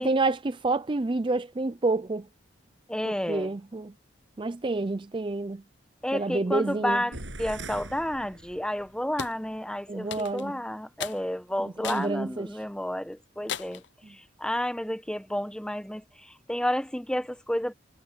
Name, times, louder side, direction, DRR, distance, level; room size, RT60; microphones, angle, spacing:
voice 1, 0.0-2.3 3.1-3.9 4.4-5.6 6.1-7.0 9.9-10.5 11.6-12.5, right 2 dB, 25° right, 0.5 m, -28 dB
voice 2, 2.9-3.5 6.0-17.7, equal, 5° left, 1.2 m, -31 dB
sound 1, 7.1-9.0, right 2 dB, 80° right, 7.2 m, -41 dB
sound 2, 9.2-9.4 10.1-10.5 11.0-11.2 11.8-12.1 12.6-12.7 13.5-13.9, left 8 dB, 65° left, 0.6 m, -36 dB
head